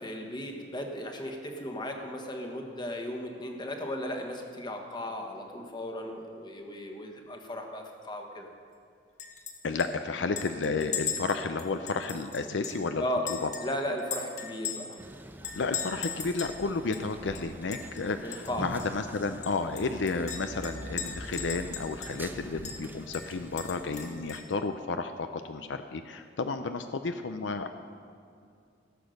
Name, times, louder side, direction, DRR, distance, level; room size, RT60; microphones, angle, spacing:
voice 1, 0.0-8.5 13.0-13.3 13.6-15.0 18.2-18.7, left 1 dB, 25° left, 3 dB, 1.3 m, -36 dB
Chink clink, 9.2-9.5 9.8-9.9 10.4-12.9 13.3-15.0 15.4-16.6 16.9-17.0 17.4-18.0 18.3-18.5 18.8-18.9 19.4-22.3 22.7-22.8 23.1-24.5, left 7 dB, 40° left, 1.4 m, -38 dB
voice 2, 9.6-13.1 13.4-13.5 15.6-27.7, left 4 dB, 65° left, 8 dB, 0.5 m, -32 dB
Male speech man speaking, 15.0-24.3, right 1 dB, 10° right, 0.5 m, -45 dB
16.0 x 7.1 x 6.5 m, 2.4 s
head